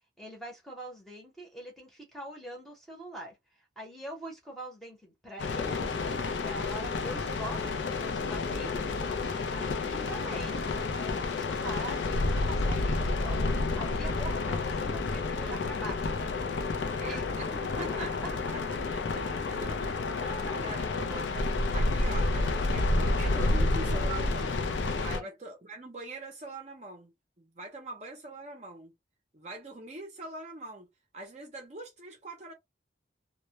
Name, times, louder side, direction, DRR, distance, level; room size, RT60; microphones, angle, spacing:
voice 1, 0.2-8.9 9.2-16.3 16.9-17.3 17.7-18.3 19.1-19.6 20.1-20.8 21.1-21.2 25.0-25.3, right 1 dB, ahead, 0.8 m, -44 dB
sound 1, 5.4-25.2, left 3 dB, 75° left, 0.4 m, -30 dB
voice 2, 9.6-10.1 17.0-18.6 18.9-24.6 25.0-27.1 27.4-28.9 29.3-30.9 31.1-32.5, right 2 dB, 35° right, 0.5 m, -43 dB
2.2 x 2.1 x 2.7 m
head